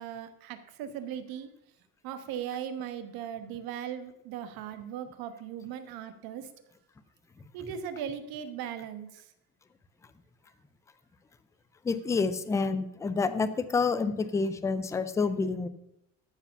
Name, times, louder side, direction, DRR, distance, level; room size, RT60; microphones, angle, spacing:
voice 1, 0.0-1.5 2.0-6.5 7.5-9.3, right 9 dB, 80° right, 9 dB, 1.3 m, -38 dB
voice 2, 11.8-15.7, left 4 dB, 10° left, 11 dB, 0.3 m, -28 dB
13.5 x 4.9 x 6.8 m, 0.80 s
cardioid pair, 175°, 36 cm